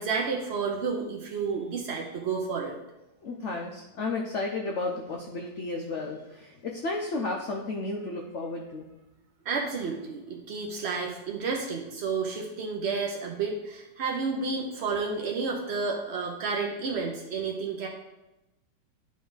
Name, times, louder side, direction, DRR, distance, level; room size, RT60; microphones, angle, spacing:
voice 1, 0.0-2.7 9.4-17.9, right 4 dB, 65° right, -1 dB, 0.6 m, -31 dB
voice 2, 3.2-8.9, left 3 dB, 80° left, 1 dB, 0.6 m, -33 dB
9.5 x 4.2 x 3.9 m, 0.97 s
omnidirectional pair, 2.1 m